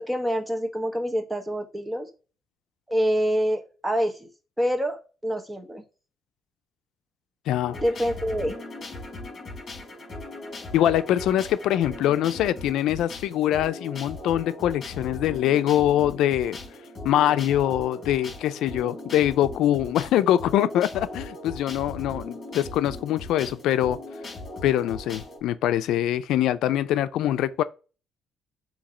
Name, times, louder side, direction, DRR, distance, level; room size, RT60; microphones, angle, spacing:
voice 1, 0.0-2.1 2.9-4.3 4.6-5.8 7.7-8.6, equal, 5° right, 1.1 m, -26 dB
voice 2, 7.5-7.8 10.7-16.6 17.0-24.0 24.6-27.6, left 12 dB, 85° left, 0.4 m, -23 dB
sound 1, 7.7-25.4, left 2 dB, 40° left, 3.6 m, -39 dB
7.2 x 2.8 x 4.9 m
cardioid pair, 120°, 0 cm